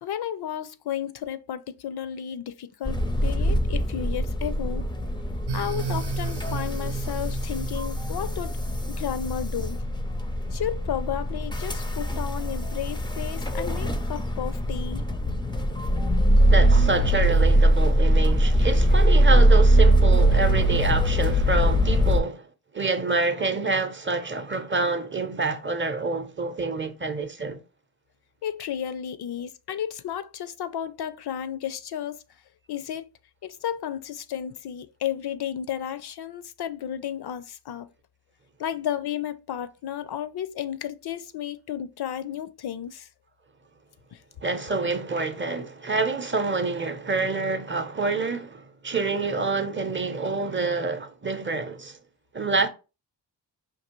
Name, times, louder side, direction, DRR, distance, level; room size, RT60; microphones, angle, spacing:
voice 1, 0.0-4.9 5.5-8.6 8.9-9.8 10.5-15.0 28.4-32.2 32.7-33.1 33.4-37.9 38.6-43.1 44.1-44.2, left 10 dB, 65° left, 0.5 m, -33 dB
sound 1, 2.9-22.2, right 1 dB, 10° left, 0.4 m, -22 dB
sound 2, 5.5-10.0, right 7 dB, 70° right, 0.5 m, -35 dB
voice 2, 16.5-22.5 22.7-27.6 44.4-52.0 52.3-52.7, right 3 dB, 30° right, 0.6 m, -27 dB
5.2 x 2.8 x 3.0 m
wide cardioid pair, 120°, 42 cm